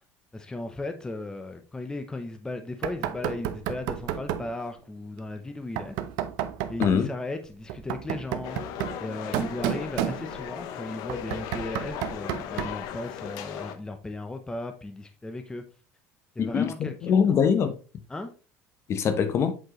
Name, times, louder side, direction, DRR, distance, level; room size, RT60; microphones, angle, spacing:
voice 1, 0.3-6.0 6.7-8.6 9.0-15.6 16.3-17.1 18.1-18.3, left 2 dB, 10° left, 0.7 m, -36 dB
Knock, 2.8-4.5 5.8-7.0 7.7-10.6 11.1-12.9, right 11 dB, 75° right, 0.7 m, -32 dB
voice 2, 6.8-7.1 16.4-17.7 18.9-19.5, left 7 dB, 40° left, 0.9 m, -23 dB
sound 1, 8.4-13.8, left 9 dB, 70° left, 0.8 m, -37 dB
7.8 x 4.4 x 3.1 m
cardioid pair, 130°, 7 cm